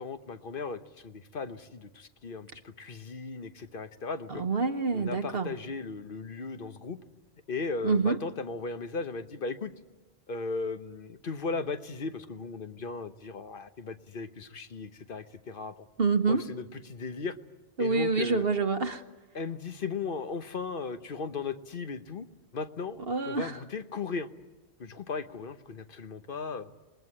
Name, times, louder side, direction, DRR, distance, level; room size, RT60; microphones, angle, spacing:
voice 1, 0.0-4.4 4.9-7.0 7.5-9.7 10.3-15.7 16.3-17.4 17.8-18.4 19.3-22.3 22.5-23.0 23.3-24.3 24.8-26.7, left 4 dB, 55° left, 1.2 m, -36 dB
voice 2, 4.3-5.5 7.8-8.2 16.0-16.4 17.8-19.0 23.1-23.5, right 4 dB, 65° right, 1.2 m, -27 dB
27.0 x 21.0 x 9.8 m
omnidirectional pair, 1.1 m